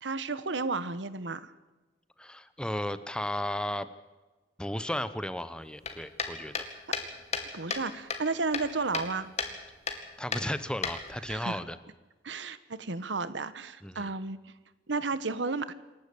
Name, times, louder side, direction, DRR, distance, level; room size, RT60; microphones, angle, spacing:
voice 1, 0.0-1.5 7.5-9.3 11.2-11.6 12.2-14.4 14.9-15.7, right 3 dB, 85° right, 14 dB, 1.2 m, -32 dB
voice 2, 2.2-3.9 4.6-6.7 10.2-11.8 13.8-14.1, left 1 dB, 5° left, 13 dB, 0.8 m, -34 dB
sound 1, 5.8-7.8 8.1-9.1 9.4-9.5 9.9-10.0 10.3-11.3, left 5 dB, 40° left, 2.4 m, -33 dB
27.0 x 11.5 x 8.4 m, 1.2 s
head